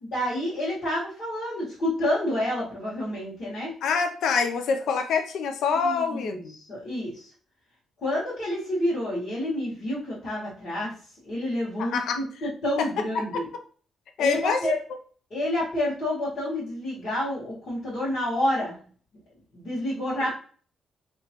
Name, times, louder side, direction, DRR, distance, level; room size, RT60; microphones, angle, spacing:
voice 1, 0.1-3.7 5.8-7.3 8.0-10.9 11.2-13.5 14.2-14.8 15.3-18.8 19.5-20.3, left 1 dB, 50° left, -10 dB, 1.6 m, -29 dB
voice 2, 3.8-6.5 11.8-12.2 13.1-13.4 14.2-14.7, left 5 dB, 75° left, 6 dB, 0.4 m, -26 dB
3.3 x 3.0 x 2.9 m, 0.43 s
cardioid pair, 135°, 0 cm